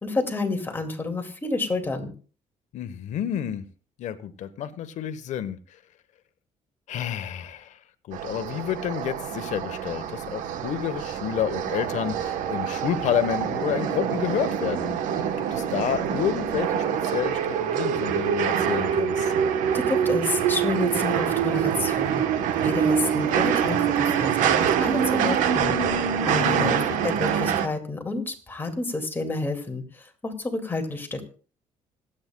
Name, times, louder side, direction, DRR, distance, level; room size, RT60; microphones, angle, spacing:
voice 1, 0.0-2.1 19.7-22.3 22.6-25.8 26.2-26.8 27.0-31.2, left 3 dB, 15° left, 3 dB, 2.2 m, -29 dB
voice 2, 2.7-3.7 4.0-5.8 6.9-7.8 8.1-14.9 15.5-19.3 26.4-26.8, left 9 dB, 70° left, 11 dB, 1.1 m, -30 dB
sound 1, 8.1-27.7, right 8 dB, 90° right, 1.1 m, -25 dB
25.5 x 8.8 x 2.3 m, 0.38 s
cardioid pair, 120°, 13 cm